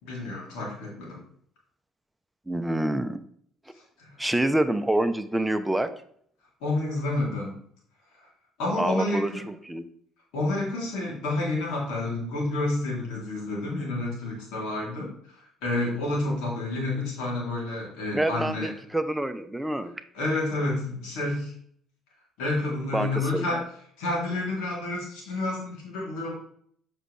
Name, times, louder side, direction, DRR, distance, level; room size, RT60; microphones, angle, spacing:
voice 1, 0.0-1.2 4.0-4.1 6.6-7.5 8.6-9.4 10.3-15.1 15.6-18.7 20.1-21.5 22.4-23.6 24.0-26.3, left 2 dB, 85° left, -4 dB, 3.3 m, -29 dB
voice 2, 2.5-3.2 4.2-5.9 8.8-9.8 18.1-19.9 22.9-23.6, right 1 dB, 10° right, 9 dB, 0.8 m, -27 dB
7.6 x 5.6 x 3.3 m, 0.62 s
supercardioid pair, 75°, 0 cm